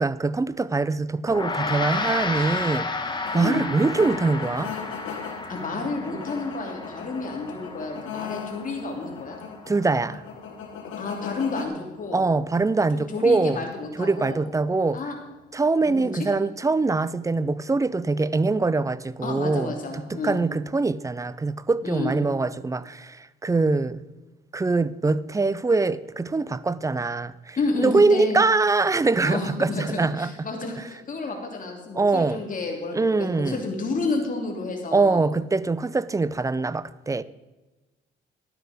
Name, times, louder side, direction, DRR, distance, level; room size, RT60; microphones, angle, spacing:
voice 1, 0.0-4.8 9.7-10.2 12.1-13.6 14.0-15.0 15.5-19.7 20.1-24.0 24.5-30.3 32.0-32.4 32.9-33.6 34.9-37.2, right 3 dB, 15° right, 0.4 m, -23 dB
Gong, 1.3-10.9, left 3 dB, 25° left, 1.3 m, -32 dB
sound 1, 3.2-11.6, left 7 dB, 80° left, 1.5 m, -38 dB
voice 2, 3.3-3.6 5.5-9.4 11.0-12.2 12.9-14.4 14.9-15.1 15.8-16.2 19.2-20.4 21.8-22.1 27.6-28.4 29.2-35.2, left 3 dB, 40° left, 2.9 m, -30 dB
12.0 x 9.3 x 5.1 m
cardioid pair, 90°, 20 cm